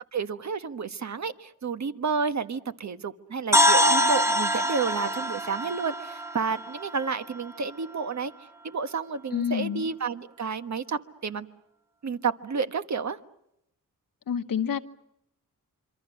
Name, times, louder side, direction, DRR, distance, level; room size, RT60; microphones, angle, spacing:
voice 1, 0.1-8.3 8.6-11.5 12.0-13.2, right 5 dB, 50° right, 10 dB, 1.3 m, -30 dB
sound 1, 3.5-7.5, equal, 10° right, 1.1 m, -24 dB
voice 2, 9.3-9.8 14.3-14.8, left 8 dB, 70° left, 8 dB, 1.2 m, -28 dB
26.5 x 24.5 x 6.3 m, 0.80 s
cardioid pair, 65°, 35 cm